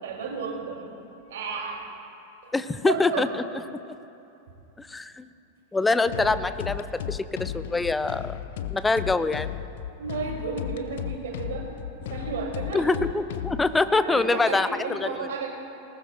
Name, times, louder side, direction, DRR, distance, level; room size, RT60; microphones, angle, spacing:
voice 1, 0.0-0.8 1.3-1.8 2.4-2.5 2.9-3.3 6.2-6.5 10.0-11.7 12.1-12.9 13.9-15.5, right 5 dB, 60° right, -1 dB, 3.6 m, -33 dB
voice 2, 2.5-3.4 4.8-5.3 5.7-8.4 8.7-9.5 12.7-15.3, left 3 dB, 10° left, 13 dB, 0.5 m, -25 dB
sound 1, 6.1-13.8, left 10 dB, 55° left, 0.6 m, -35 dB
20.0 x 19.0 x 2.7 m, 2.8 s
figure-of-eight pair, 90°, 0 cm